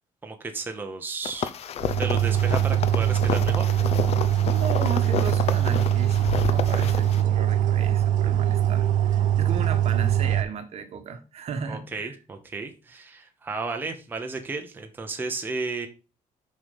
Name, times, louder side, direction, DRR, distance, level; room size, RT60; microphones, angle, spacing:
voice 1, 0.2-1.5 2.0-3.7 11.7-15.9, right 4 dB, 15° right, 4 dB, 0.9 m, -33 dB
sound 1, 1.2-7.2, left 8 dB, 50° left, 0.7 m, -31 dB
sound 2, 1.8-10.4, right 11 dB, 70° right, 1.0 m, -22 dB
voice 2, 4.5-12.1, right 6 dB, 50° right, 9 dB, 1.4 m, -35 dB
6.8 x 5.6 x 5.2 m, 0.31 s
cardioid pair, 170°, 14 cm